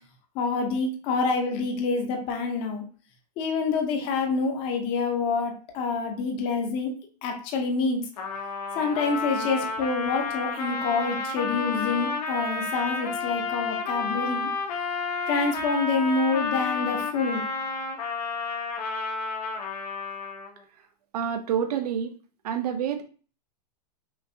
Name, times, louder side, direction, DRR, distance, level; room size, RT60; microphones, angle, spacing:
voice 1, 0.3-2.8 3.4-6.9 7.2-8.0 8.7-14.5 15.3-17.4, left 4 dB, 25° left, 3 dB, 0.7 m, -27 dB
Trumpet, 8.2-20.6, left 4 dB, 65° left, 1.0 m, -31 dB
voice 2, 21.1-22.2 22.4-23.0, right 8 dB, 65° right, 5 dB, 0.6 m, -28 dB
5.7 x 2.6 x 2.7 m, 0.39 s
supercardioid pair, 170°, 21 cm